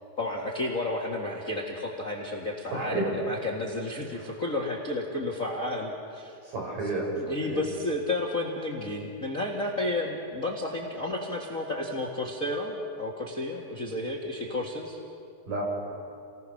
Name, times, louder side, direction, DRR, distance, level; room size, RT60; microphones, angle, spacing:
voice 1, 0.2-6.4 7.2-15.0, left 2 dB, 35° left, 0 dB, 1.5 m, -32 dB
voice 2, 2.7-3.1 4.1-4.3 6.4-7.6 15.5-16.1, right 2 dB, 65° right, -2 dB, 6.7 m, -32 dB
29.5 x 19.5 x 6.5 m, 2.4 s
omnidirectional pair, 4.1 m